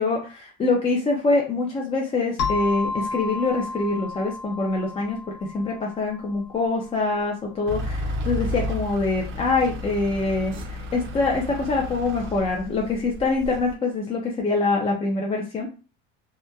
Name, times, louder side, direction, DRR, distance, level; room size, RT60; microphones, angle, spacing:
voice 1, 0.0-15.7, left 3 dB, 20° left, -1 dB, 0.4 m, -25 dB
sound 1, 2.4-6.8, left 3 dB, 60° left, 0.8 m, -32 dB
Truck / Idling, 7.7-13.7, left 1 dB, 40° right, 0.5 m, -32 dB
2.8 x 2.1 x 2.2 m, 0.33 s
cardioid pair, 130°, 30 cm